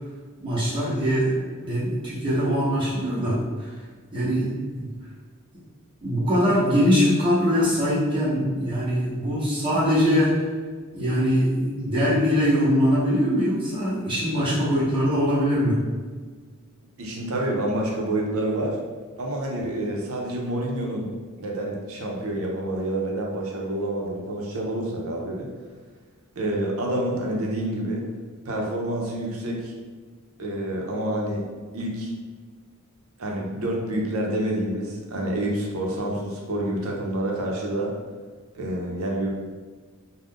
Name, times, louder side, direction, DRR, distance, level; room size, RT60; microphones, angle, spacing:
voice 1, 0.4-3.7 4.1-4.9 6.0-10.3 10.9-15.8, equal, 25° right, -10 dB, 0.8 m, -22 dB
voice 2, 17.0-18.8 19.2-21.1 21.4-25.5 26.4-28.1 28.5-29.7 30.4-31.5 31.7-32.1 33.2-37.9 38.5-39.3, right 1 dB, 75° right, -1 dB, 0.6 m, -28 dB
2.4 x 2.2 x 3.5 m, 1.5 s
head